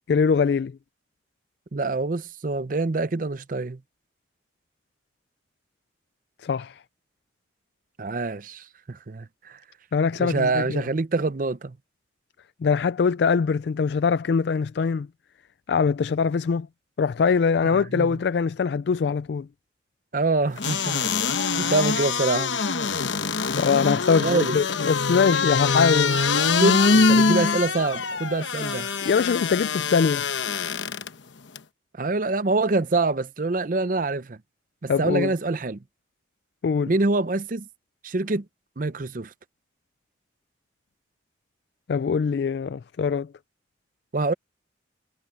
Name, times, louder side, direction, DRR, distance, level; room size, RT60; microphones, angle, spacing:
voice 1, 0.1-0.8 6.4-6.8 9.9-10.8 12.6-15.1 15.7-16.7 17.0-19.5 23.6-26.2 29.0-30.3 34.9-35.3 36.6-36.9 41.9-43.3, left 5 dB, 60° left, 0.3 m, -22 dB
voice 2, 1.7-3.8 8.0-9.6 10.2-11.8 17.6-18.2 20.1-22.6 24.2-24.6 26.5-28.9 32.0-34.4 34.8-35.8 36.9-37.7 38.0-38.4 38.8-39.3 44.1-44.3, right 3 dB, 45° right, 0.6 m, -26 dB
sound 1, 20.6-31.1 31.6-31.7, left 4 dB, 75° left, 1.0 m, -24 dB
head